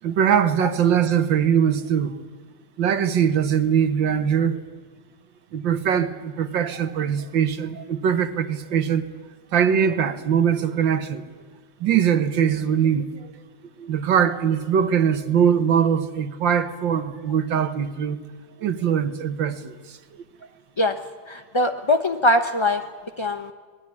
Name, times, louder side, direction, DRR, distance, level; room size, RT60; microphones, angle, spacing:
voice 1, 0.0-2.1 2.8-4.6 5.5-9.0 9.5-11.3 11.8-13.3 13.8-18.2 18.6-20.0, right 8 dB, 80° right, 1.9 m, -22 dB
voice 2, 21.3-22.8 23.2-23.5, left 1 dB, 40° left, 0.3 m, -22 dB
26.0 x 19.5 x 9.7 m
omnidirectional pair, 2.0 m